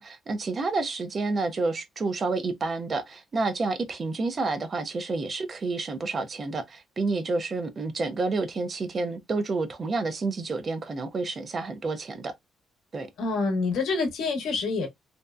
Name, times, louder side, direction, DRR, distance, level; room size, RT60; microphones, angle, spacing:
voice 1, 0.0-12.3 12.9-13.1, right 3 dB, 40° right, 0.5 m, -29 dB
voice 2, 13.2-14.9, left 4 dB, 80° left, 0.8 m, -26 dB
2.5 x 2.1 x 2.3 m
cardioid pair, 90°, 0 cm